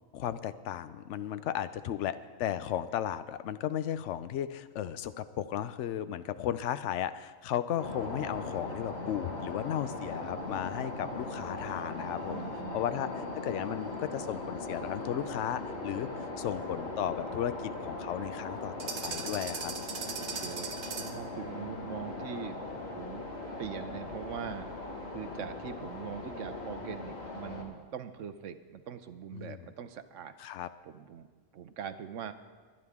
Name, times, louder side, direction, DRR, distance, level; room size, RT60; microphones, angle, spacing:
voice 1, 0.1-12.4 12.7-19.7 29.3-29.6 30.4-30.7, left 10 dB, 65° left, 13 dB, 0.9 m, -35 dB
sound 1, 7.8-27.6, left 2 dB, 50° left, 2.0 m, -39 dB
voice 2, 12.3-13.2 20.1-22.6 22.9-23.2 23.6-30.3 30.8-31.3 31.5-32.3, right 8 dB, 65° right, 10 dB, 1.0 m, -42 dB
sound 2, 18.8-21.3, right 5 dB, 85° right, 1.6 m, -39 dB
22.5 x 9.7 x 3.6 m, 1.5 s
omnidirectional pair, 1.4 m